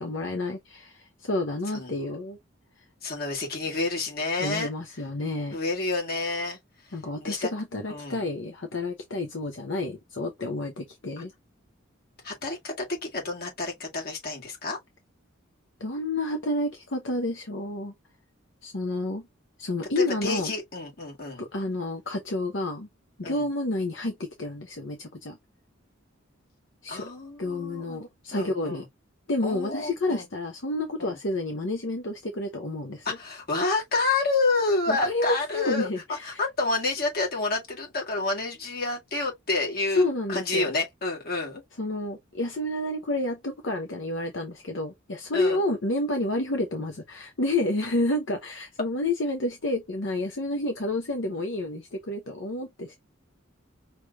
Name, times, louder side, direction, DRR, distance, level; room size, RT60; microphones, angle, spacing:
voice 1, 0.0-2.4 2.8-2.9 4.4-5.6 6.9-11.3 15.8-17.9 18.6-19.3 19.6-20.5 21.4-22.9 23.2-25.4 26.8-27.1 27.4-28.8 29.3-33.2 34.9-36.4 40.0-40.7 41.8-53.0, left 2 dB, 65° left, 0.8 m, -30 dB
voice 2, 3.0-4.7 5.5-6.6 6.8-6.9 7.2-7.5 7.9-8.2 12.2-14.8 20.0-21.4 23.2-23.5 26.9-28.0 28.3-28.8 29.4-30.3 31.0-31.2 33.1-41.6 45.3-45.6, left 3 dB, 50° left, 2.0 m, -29 dB
5.8 x 3.3 x 2.4 m
head